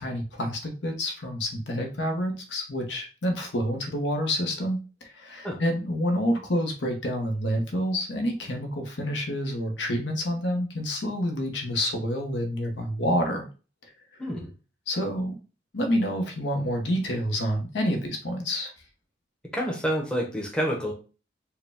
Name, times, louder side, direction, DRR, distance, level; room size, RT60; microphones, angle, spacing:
voice 1, 0.0-13.4 14.9-15.3 15.7-18.7, equal, 75° left, 3 dB, 0.9 m, -28 dB
voice 2, 19.5-20.9, equal, 5° left, 0 dB, 0.7 m, -28 dB
4.6 x 2.2 x 3.4 m, 0.34 s
head